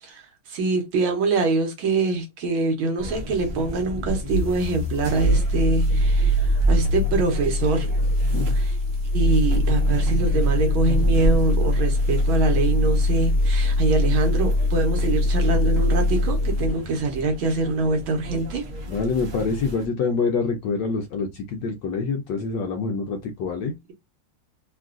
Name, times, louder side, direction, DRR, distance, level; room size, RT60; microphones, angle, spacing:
voice 1, 0.0-7.9 8.5-8.7 9.1-18.7, right 3 dB, 75° right, 1.6 m, -24 dB
sound 1, 3.0-19.9, right 1 dB, 50° right, 1.0 m, -32 dB
sound 2, 4.1-16.8, left 1 dB, 20° left, 1.0 m, -22 dB
voice 2, 18.9-23.7, left 4 dB, 75° left, 1.0 m, -26 dB
3.6 x 2.3 x 2.4 m
omnidirectional pair, 2.4 m